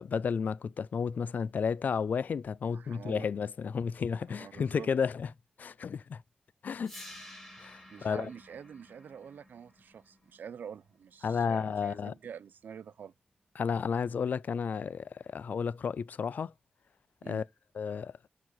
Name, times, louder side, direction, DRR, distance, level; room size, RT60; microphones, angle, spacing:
voice 1, 0.0-5.3 5.6-6.2 6.6-6.9 7.6-8.3 11.2-12.1 13.6-16.5 17.3-17.4 17.8-18.1, left 6 dB, 65° left, 0.3 m, -32 dB
voice 2, 2.7-3.3 4.3-4.9 7.9-13.1 17.2-17.4, right 7 dB, 85° right, 0.3 m, -46 dB
sound 1, 6.8-12.8, left 1 dB, 5° left, 3.9 m, -53 dB
5.7 x 4.8 x 4.6 m
wide cardioid pair, 115°, 3 cm